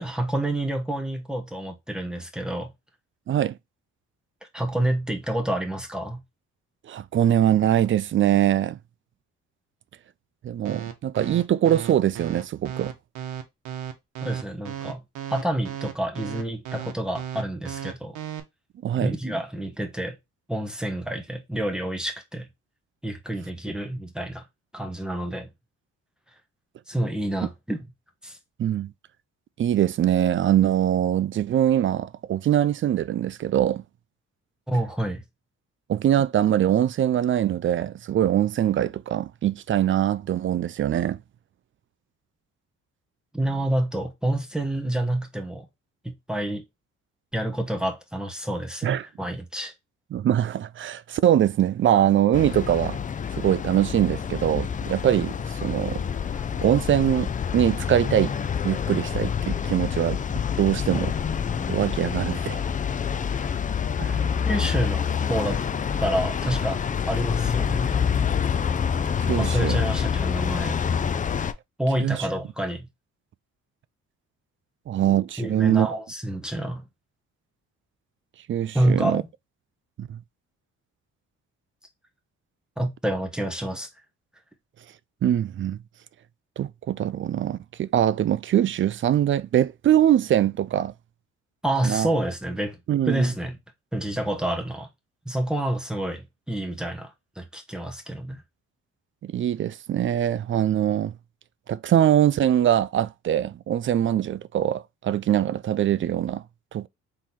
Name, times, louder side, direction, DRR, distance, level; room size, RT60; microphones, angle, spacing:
voice 1, 0.0-2.7 4.5-6.2 14.2-15.0 15.3-18.2 19.0-20.2 20.5-22.5 23.0-24.4 24.7-25.5 26.9-27.9 28.2-28.4 34.7-35.2 43.3-45.6 46.0-46.6 47.3-49.7 64.4-65.6 66.0-68.1 69.4-70.8 71.8-72.9 75.4-76.9 78.7-79.3 82.8-83.9 91.6-92.8 93.1-93.6 93.9-94.9 95.2-98.4, right 1 dB, 5° right, 1.1 m, -28 dB
voice 2, 3.3-3.6 6.9-8.8 10.4-12.9 18.8-19.1 28.6-28.9 29.6-33.8 35.9-41.2 48.8-49.0 50.1-53.0 53.3-56.0 56.6-58.3 58.6-60.2 60.6-61.1 61.7-62.6 64.0-64.2 69.2-69.8 72.0-72.2 74.9-76.0 78.5-79.2 80.0-80.2 85.2-85.8 86.6-90.9 91.8-92.1 92.9-93.3 99.2-101.1 101.7-106.4 106.7-106.9, right 11 dB, 40° right, 0.4 m, -23 dB
sound 1, 10.7-18.4, right 9 dB, 90° right, 0.9 m, -34 dB
sound 2, 52.3-71.5, left 7 dB, 25° left, 0.4 m, -27 dB
3.8 x 3.2 x 4.2 m
cardioid pair, 90°, 30 cm